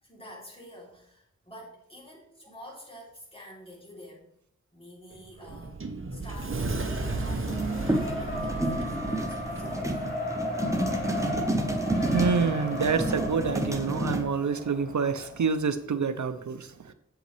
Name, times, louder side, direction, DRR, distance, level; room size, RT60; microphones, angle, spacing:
voice 1, 0.0-4.3 4.7-5.8 6.1-7.8 8.1-10.0, equal, 20° left, -4 dB, 3.4 m, -48 dB
Sliding door, 5.1-9.9, right 3 dB, 45° right, 1.0 m, -34 dB
Race car auto racing, 6.5-15.6, left 1 dB, 35° left, 3.1 m, -36 dB
sound 1, 6.6-14.2, right 1 dB, 10° right, 1.1 m, -31 dB
voice 2, 11.6-16.9, right 5 dB, 75° right, 11 dB, 0.6 m, -28 dB
8.0 x 7.7 x 3.3 m, 0.76 s
wide cardioid pair, 70°, 30 cm